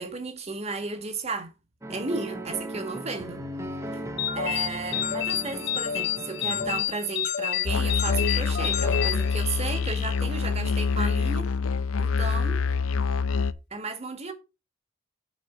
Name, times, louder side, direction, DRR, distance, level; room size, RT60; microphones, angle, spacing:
voice 1, 0.0-1.5 1.9-3.4 3.9-4.0 4.3-11.5 12.0-12.6 13.7-14.3, right 3 dB, 30° right, 1.7 m, -34 dB
sound 1, 1.8-6.8, right 1 dB, 15° right, 0.9 m, -37 dB
sound 2, 4.2-9.9, left 10 dB, 50° left, 1.5 m, -29 dB
Musical instrument, 7.7-13.5, left 5 dB, 75° left, 0.6 m, -26 dB
8.9 x 4.6 x 7.0 m
head